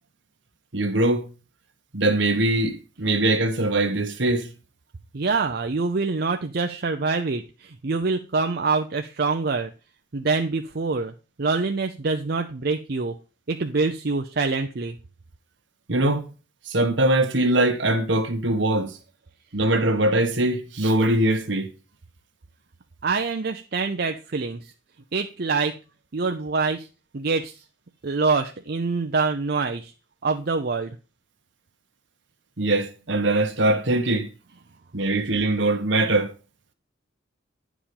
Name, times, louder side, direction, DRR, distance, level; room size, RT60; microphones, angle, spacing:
voice 1, 0.7-1.3 1.9-4.5 15.9-16.3 16.7-18.9 19.5-21.7 32.6-34.3 34.9-36.3, right 1 dB, 70° right, 1.5 m, -22 dB
voice 2, 5.1-9.7 10.1-11.1 11.4-13.2 13.5-15.0 23.0-24.7 25.1-25.8 26.1-26.9 27.1-27.6 28.0-29.9 30.2-31.0, right 4 dB, 55° right, 0.6 m, -25 dB
10.0 x 5.1 x 5.3 m
head